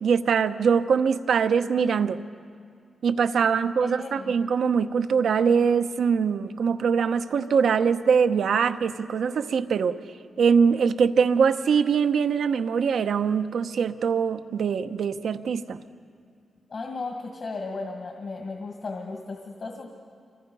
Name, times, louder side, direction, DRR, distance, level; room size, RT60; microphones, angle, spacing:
voice 1, 0.0-2.2 3.0-10.0 10.4-15.8, right 6 dB, 75° right, 9 dB, 0.8 m, -23 dB
voice 2, 3.6-4.3 16.7-19.9, left 3 dB, 55° left, 1 dB, 2.1 m, -35 dB
28.0 x 25.0 x 5.5 m, 2.2 s
cardioid pair, 100°, 0 cm